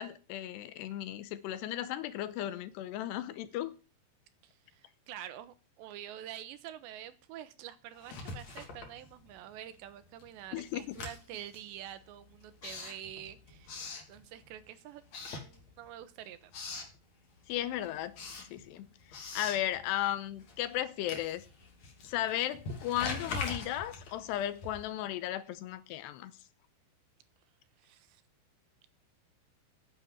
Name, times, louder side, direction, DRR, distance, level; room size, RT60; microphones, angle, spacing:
voice 1, 0.0-3.7 10.5-10.8 17.5-18.9 19.3-21.5 22.0-26.3, left 12 dB, 80° left, 2.9 m, -35 dB
voice 2, 4.4-13.7 14.1-16.5 27.8-28.2, right 11 dB, 85° right, 3.3 m, -47 dB
Writing, 8.0-9.6 9.9-14.7 15.0-16.0 16.3-17.0 17.4-25.1, left 3 dB, 45° left, 3.6 m, -43 dB
9.8 x 8.9 x 8.5 m
omnidirectional pair, 5.0 m